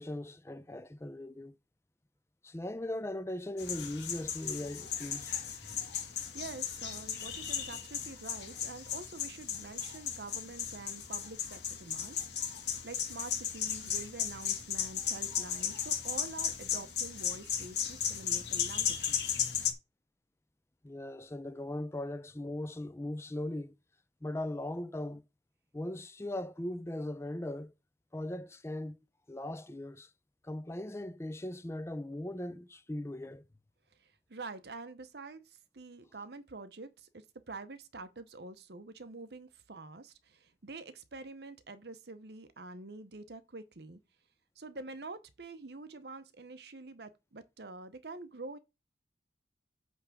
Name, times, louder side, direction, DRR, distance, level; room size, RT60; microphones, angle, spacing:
voice 1, 0.0-1.6 2.4-5.4 5.7-5.8 20.8-23.8 24.2-25.3 25.7-27.7 28.1-29.0 29.3-30.1 30.4-33.4, left 1 dB, 15° left, 0.5 m, -39 dB
sound 1, 3.6-19.7, left 8 dB, 65° left, 1.7 m, -36 dB
voice 2, 6.3-12.2 12.5-12.6 12.8-19.4 34.0-44.0 44.6-48.6, right 3 dB, 60° right, 0.8 m, -46 dB
8.7 x 3.4 x 6.1 m
head